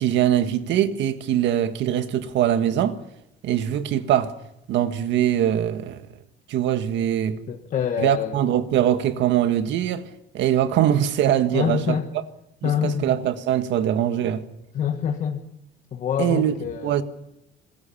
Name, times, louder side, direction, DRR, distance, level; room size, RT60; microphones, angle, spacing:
voice 1, 0.0-3.0 3.4-4.3 4.7-6.0 6.5-7.4 8.0-10.1 10.3-12.0 12.6-14.4 16.2-16.5 16.8-17.0, right 10 dB, 60° right, 1.6 m, -22 dB
voice 2, 7.5-8.4 11.5-12.1 12.6-13.1 14.7-15.5 15.9-17.0, left 8 dB, 35° left, 1.3 m, -26 dB
27.0 x 20.5 x 7.1 m
cardioid pair, 165°, 21 cm